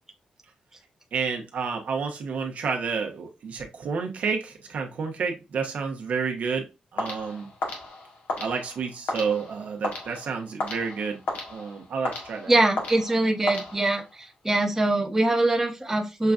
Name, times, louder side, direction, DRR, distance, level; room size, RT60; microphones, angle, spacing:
voice 1, 1.1-7.5 8.4-11.2 11.5-12.5, right 5 dB, 75° right, 0.9 m, -30 dB
sound 1, 7.0-14.2, left 2 dB, 85° left, 1.4 m, -35 dB
voice 2, 12.5-16.3, right 2 dB, 15° right, 1.0 m, -23 dB
6.5 x 2.3 x 2.5 m
cardioid pair, 80°, 3 cm